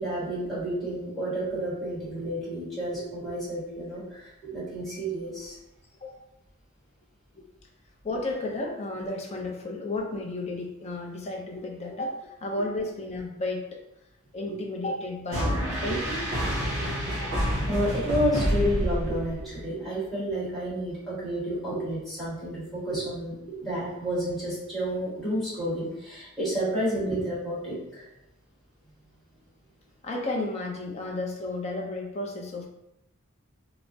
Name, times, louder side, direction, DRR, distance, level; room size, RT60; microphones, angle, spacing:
voice 1, 0.0-5.5 15.9-16.0 17.7-23.3 23.6-28.0, equal, ahead, -10 dB, 1.3 m, -30 dB
voice 2, 8.0-13.8 14.3-16.2 30.0-32.7, left 2 dB, 30° left, 0 dB, 0.4 m, -33 dB
sound 1, 15.3-19.6, equal, 60° right, 1.2 m, -28 dB
3.3 x 2.0 x 2.6 m, 0.86 s
head